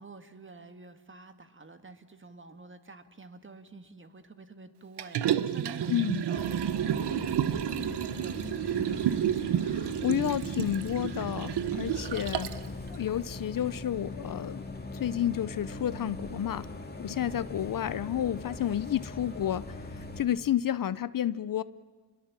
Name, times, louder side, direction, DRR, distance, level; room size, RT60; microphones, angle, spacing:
voice 1, 0.0-9.0, right 3 dB, 30° right, 8 dB, 1.8 m, -49 dB
Liquid, 5.0-12.7 13.1-13.2, right 10 dB, 85° right, 0.9 m, -30 dB
voice 2, 5.9-6.2 9.7-12.5 12.9-14.6 14.9-16.7 17.0-21.6, left 11 dB, 55° left, 17 dB, 0.6 m, -31 dB
Bus, 6.4-20.2, left 2 dB, 25° left, 2.5 m, -41 dB
28.5 x 21.0 x 7.4 m, 1.5 s
cardioid pair, 75°, 39 cm